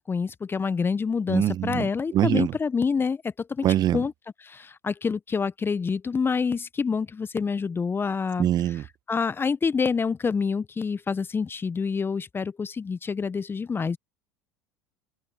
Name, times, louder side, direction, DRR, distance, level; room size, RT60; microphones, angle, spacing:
voice 1, 0.0-3.7 3.9-4.1 4.4-14.0, left 5 dB, 20° left, 1.1 m, -27 dB
voice 2, 1.3-1.9 2.1-2.5 3.6-4.0 8.4-8.8, right 12 dB, 40° right, 1.5 m, -23 dB
open air
figure-of-eight pair, 70°, 10 cm